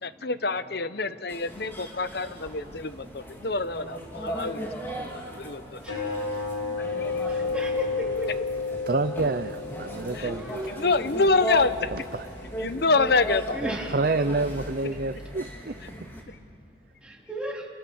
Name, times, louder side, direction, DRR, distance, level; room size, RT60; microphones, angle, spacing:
voice 1, 0.0-4.7 5.0-5.8 6.8-7.3 10.1-10.3 10.8-11.9 12.6-13.6, left 3 dB, 55° left, 13 dB, 0.9 m, -26 dB
sound 1, 1.3-16.2, equal, 10° left, 3.3 m, -37 dB
sound 2, 5.8-12.7, left 4 dB, 85° left, 6.0 m, -32 dB
voice 2, 7.3-8.1 10.3-10.7 13.5-14.0 17.0-17.7, equal, 5° right, -2 dB, 3.6 m, -35 dB
voice 3, 8.9-10.5 11.9-12.3 13.6-16.1, right 3 dB, 50° right, 10 dB, 0.6 m, -28 dB
29.5 x 28.5 x 7.1 m, 2.5 s
head